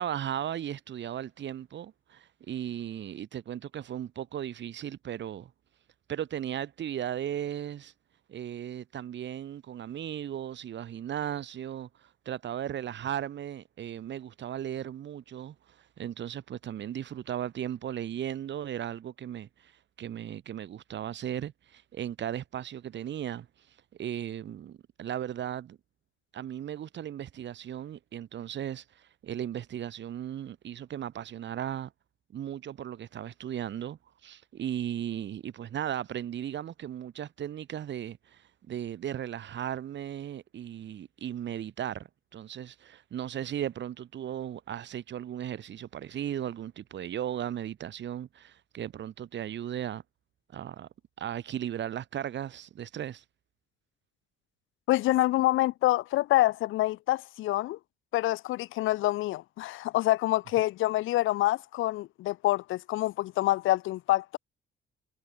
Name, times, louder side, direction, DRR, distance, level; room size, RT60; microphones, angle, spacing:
voice 1, 0.0-5.5 6.1-7.9 8.3-19.7 20.0-23.5 24.0-25.8 26.3-31.9 32.3-50.0 50.5-50.9 51.2-53.2, right 10 dB, 65° right, 2.9 m, -36 dB
voice 2, 54.9-57.8 58.1-64.4, left 16 dB, 85° left, 0.7 m, -26 dB
cardioid pair, 90°, 20 cm